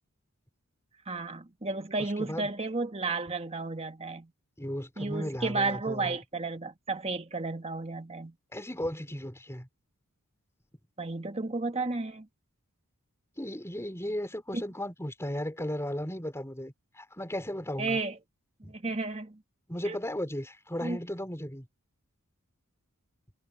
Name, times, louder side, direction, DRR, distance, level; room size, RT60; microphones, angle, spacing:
voice 1, 1.1-4.3 5.0-8.3 11.0-12.3 14.5-14.6 17.8-18.2 18.6-19.4 19.8-20.0 20.8-21.0, right 3 dB, 30° right, 1.5 m, -33 dB
voice 2, 4.6-6.2 8.5-9.7 13.4-18.0 18.6-18.7 19.7-21.7, equal, 10° left, 4.4 m, -35 dB
head